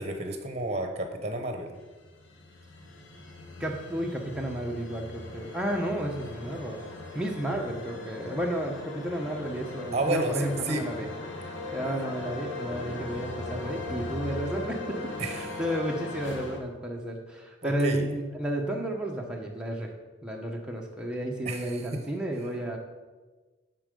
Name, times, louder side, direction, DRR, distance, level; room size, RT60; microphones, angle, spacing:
voice 1, 0.0-1.7 9.9-10.9 15.2-15.4 17.6-18.0 21.5-22.0, right 2 dB, 35° right, 5 dB, 0.9 m, -31 dB
sound 1, 1.9-16.6, left 2 dB, 70° left, 1.1 m, -39 dB
voice 2, 3.6-6.8 7.1-11.1 11.7-19.9 20.2-22.8, right 1 dB, 5° right, -1 dB, 0.7 m, -32 dB
9.5 x 4.5 x 5.2 m, 1.3 s
head